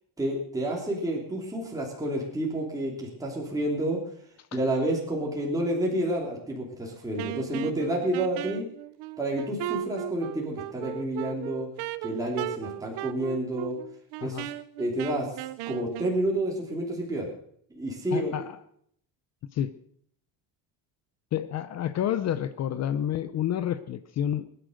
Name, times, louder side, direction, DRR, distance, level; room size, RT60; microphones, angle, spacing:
voice 1, 0.2-4.0 4.5-8.7 9.2-11.7 12.0-13.8 14.2-14.5 14.8-15.3 15.7-17.3 17.7-18.3, right 1 dB, 10° right, -2 dB, 3.0 m, -29 dB
Wind instrument woodwind instrument, 7.2-16.2, right 14 dB, 70° right, 0.9 m, -36 dB
voice 2, 18.1-18.6 19.5-19.7 21.3-24.5, left 10 dB, 40° left, 13 dB, 0.6 m, -29 dB
21.0 x 10.0 x 6.5 m, 0.66 s
cardioid pair, 175°, 42 cm